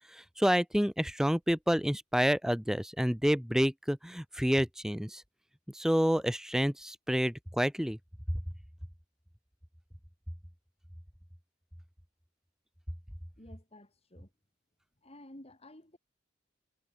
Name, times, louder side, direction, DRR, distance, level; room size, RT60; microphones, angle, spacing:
voice 1, 0.4-5.2 5.7-8.0, equal, 5° right, 1.4 m, -28 dB
voice 2, 13.4-14.3 15.0-16.0, left 1 dB, 35° left, 5.3 m, -52 dB
head